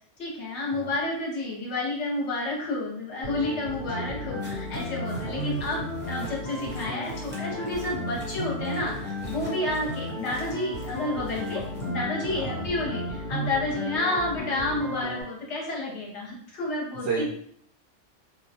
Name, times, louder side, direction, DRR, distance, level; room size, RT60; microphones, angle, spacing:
voice 1, 0.2-17.3, left 2 dB, 70° left, -3 dB, 1.1 m, -30 dB
sound 1, 3.2-15.2, equal, 45° left, 1.3 m, -34 dB
voice 2, 3.7-4.1 5.1-5.5 12.3-12.6 17.0-17.3, right 4 dB, 60° right, -5 dB, 0.7 m, -33 dB
sound 2, 4.4-11.9, equal, 20° right, 0.3 m, -49 dB
2.4 x 2.1 x 2.7 m, 0.64 s
omnidirectional pair, 1.2 m